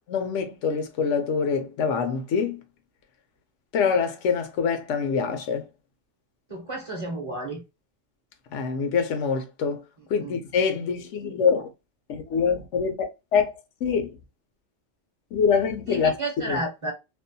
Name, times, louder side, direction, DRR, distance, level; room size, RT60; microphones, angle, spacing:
voice 1, 0.1-2.6 3.7-5.7 8.5-9.8 10.1-11.7 12.1-13.1 13.3-14.1 15.3-16.2 16.5-16.6, left 6 dB, 90° left, 0.9 m, -25 dB
voice 2, 6.5-7.6 10.2-10.4 15.9-16.9, right 1 dB, 35° right, 0.6 m, -31 dB
2.6 x 2.1 x 2.5 m
omnidirectional pair, 1.2 m